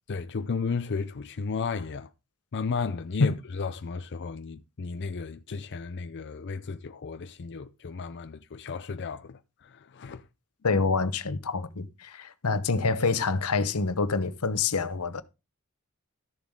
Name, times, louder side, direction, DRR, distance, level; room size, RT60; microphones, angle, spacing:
voice 1, 0.1-2.1 2.5-10.2, left 5 dB, 55° left, 0.5 m, -34 dB
voice 2, 10.6-15.2, left 4 dB, 85° left, 1.0 m, -26 dB
13.5 x 7.2 x 3.7 m
head